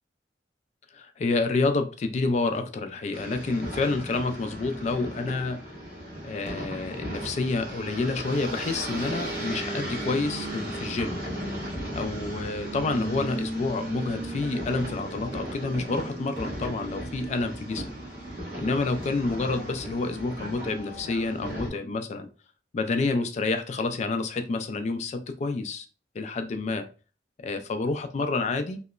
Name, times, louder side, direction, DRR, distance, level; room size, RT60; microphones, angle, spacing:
voice 1, 0.9-5.6 6.2-11.2 11.9-17.8 18.6-22.3 22.7-25.9 26.1-26.9 27.4-28.8, left 3 dB, 40° left, 0.3 m, -28 dB
sound 1, 3.1-21.7, right 1 dB, 55° right, 1.2 m, -36 dB
2.8 x 2.0 x 2.3 m
head